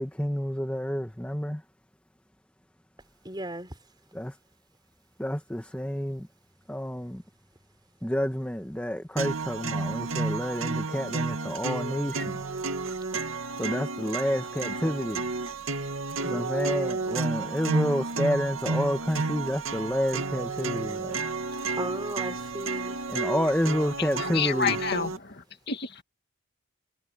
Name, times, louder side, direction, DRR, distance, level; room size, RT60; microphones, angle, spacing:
voice 1, 0.0-1.6 4.1-4.3 5.2-6.3 6.7-7.2 8.0-12.4 13.6-15.2 16.2-21.2 23.1-24.7, equal, 5° left, 1.6 m, -29 dB
voice 2, 3.2-3.7 21.5-23.0, right 1 dB, 20° right, 4.8 m, -36 dB
sound 1, 9.2-25.2, right 3 dB, 80° right, 2.2 m, -31 dB
voice 3, 24.0-26.0, left 6 dB, 50° left, 2.1 m, -30 dB
head